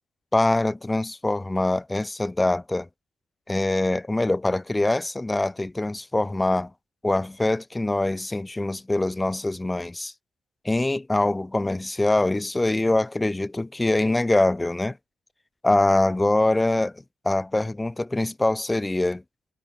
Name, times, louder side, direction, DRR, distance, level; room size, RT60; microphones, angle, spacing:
voice 1, 0.3-2.9 3.5-6.7 7.0-10.1 10.6-15.0 15.6-19.2, left 2 dB, 10° left, 1.2 m, -24 dB
cardioid pair, 170°, 0 cm